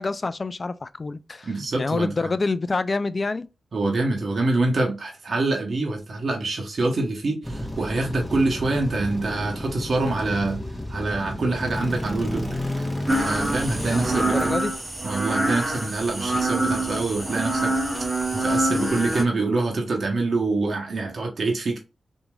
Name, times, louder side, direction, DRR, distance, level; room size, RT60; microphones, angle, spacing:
voice 1, 0.0-1.5 1.8-3.5 13.7-14.7, left 3 dB, 45° left, 0.3 m, -27 dB
voice 2, 1.4-2.3 3.7-10.6 10.9-12.5 12.8-12.9 13.1-14.5 15.0-17.7 18.3-21.8, right 2 dB, 60° right, 0.9 m, -25 dB
sound 1, 7.4-14.6, equal, 10° left, 1.1 m, -31 dB
sound 2, 13.1-19.2, right 2 dB, 25° right, 0.9 m, -25 dB
2.9 x 2.6 x 2.2 m
supercardioid pair, 45°, 0 cm